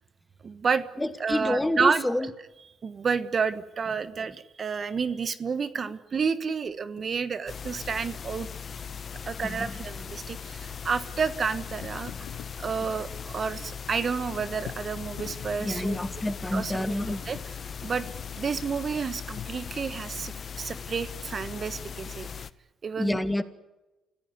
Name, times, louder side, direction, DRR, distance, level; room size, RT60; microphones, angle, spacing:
voice 1, 0.4-2.0 2.8-8.5 9.3-12.1 12.6-16.0 16.5-17.4 17.8-18.1 18.4-22.3 22.8-23.3, right 5 dB, 45° right, 14 dB, 1.3 m, -30 dB
voice 2, 1.0-2.3 9.4-9.7 15.6-17.3 23.0-23.4, left 1 dB, 10° left, 12 dB, 1.7 m, -28 dB
sound 1, 7.0-7.1 10.2-18.9 19.3-20.1, left 12 dB, 85° left, 0.9 m, -47 dB
sound 2, 7.5-22.5, left 7 dB, 45° left, 0.9 m, -39 dB
26.5 x 16.5 x 9.6 m, 1.0 s
cardioid pair, 90°, 0 cm